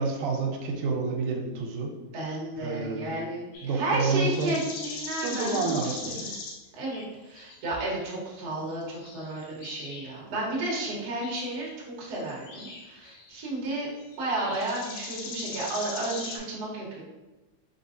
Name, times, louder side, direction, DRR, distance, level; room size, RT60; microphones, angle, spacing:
voice 1, 0.0-1.9 2.6-3.1 3.6-4.6 5.2-6.4, right 4 dB, 85° right, 1 dB, 2.0 m, -29 dB
voice 2, 2.1-6.3 6.8-13.9 14.2-17.0, right 2 dB, 70° right, -4 dB, 0.9 m, -32 dB
sound 1, 3.5-3.9 4.2-7.1 7.4-8.1 8.5-8.6 9.0-10.1 11.2-11.6 12.2-13.4 14.0-16.4, left 3 dB, 75° left, 1.9 m, -40 dB
4.5 x 3.4 x 2.7 m, 1.1 s
omnidirectional pair, 3.5 m